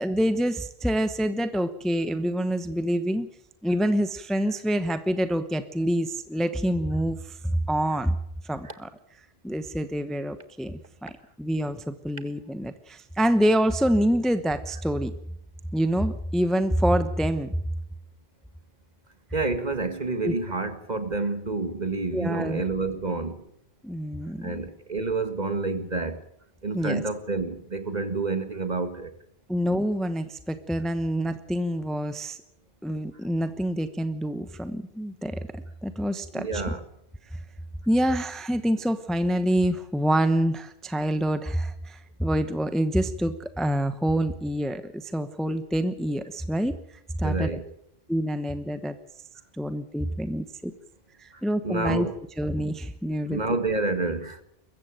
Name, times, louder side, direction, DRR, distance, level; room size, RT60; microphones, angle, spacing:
voice 1, 0.0-3.3 3.6-8.2 8.4-8.9 9.4-11.1 11.4-15.1 15.7-17.6 20.2-20.3 22.1-22.6 23.8-24.6 26.7-27.0 29.5-32.4 32.8-36.7 37.3-37.4 37.9-46.7 47.2-47.5 48.1-48.9 49.5-50.7 51.2-52.1 52.4-53.4, equal, ahead, 0.9 m, -26 dB
voice 2, 19.3-23.4 24.4-26.2 26.6-29.1 36.3-36.8 47.2-47.6 51.3-52.2 53.2-54.4, right 3 dB, 40° right, 2.0 m, -29 dB
22.5 x 14.5 x 9.0 m
omnidirectional pair, 1.1 m